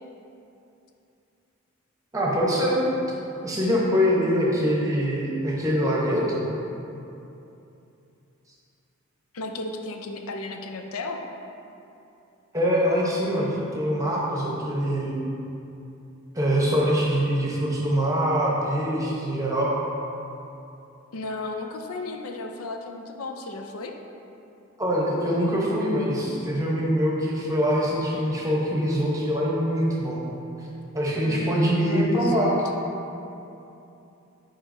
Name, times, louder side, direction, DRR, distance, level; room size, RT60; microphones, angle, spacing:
voice 1, 2.1-2.8 3.4-6.4 12.5-15.1 16.3-19.7 24.8-30.2 30.9-32.5, equal, 15° right, -4 dB, 0.9 m, -24 dB
voice 2, 9.3-11.2 21.1-23.9 31.2-32.5, left 2 dB, 85° left, 4 dB, 0.5 m, -34 dB
9.7 x 3.9 x 2.7 m, 2.8 s
head